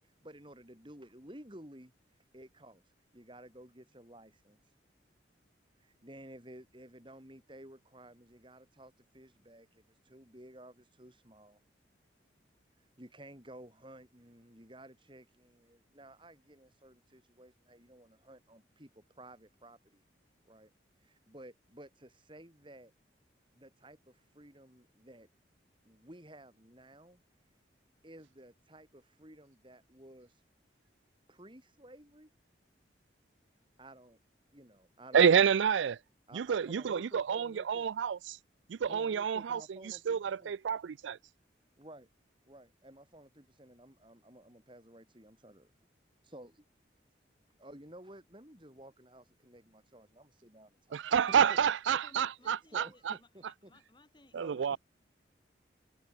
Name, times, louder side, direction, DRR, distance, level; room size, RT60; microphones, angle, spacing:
voice 1, 0.0-4.7 5.8-11.6 12.7-20.0 20.4-20.7 21.0-22.9 23.5-25.3 25.8-27.2 28.0-30.4 31.3-32.3 33.8-34.2 34.5-35.6 36.3-37.9 38.9-40.5 41.8-42.1 42.5-45.7 46.2-46.6 47.6-51.6 51.9-52.0 52.4-53.7 54.4-54.8, right 1 dB, 25° right, 6.3 m, -54 dB
voice 2, 35.1-36.0 36.4-38.4 38.7-39.6 40.1-41.2 50.9-53.1 54.3-54.8, right 7 dB, 85° right, 0.4 m, -28 dB
voice 3, 52.0-54.8, left 2 dB, 25° left, 7.3 m, -61 dB
head